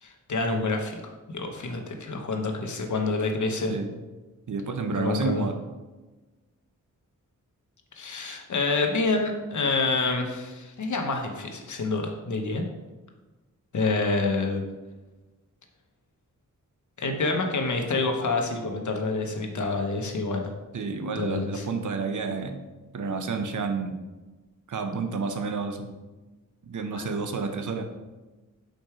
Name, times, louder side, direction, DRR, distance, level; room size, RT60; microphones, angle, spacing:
voice 1, 0.0-1.0 1.3-3.7 4.9-5.5 8.0-12.6 13.7-14.6 17.0-20.5 21.1-21.6 26.9-27.1, left 3 dB, 65° left, 3 dB, 1.1 m, -27 dB
voice 2, 4.5-5.6 20.7-22.6 22.9-24.0 24.7-25.9 26.6-27.8, right 4 dB, 65° right, 6 dB, 0.8 m, -30 dB
5.2 x 4.4 x 4.9 m, 1.2 s
wide cardioid pair, 90°, 32 cm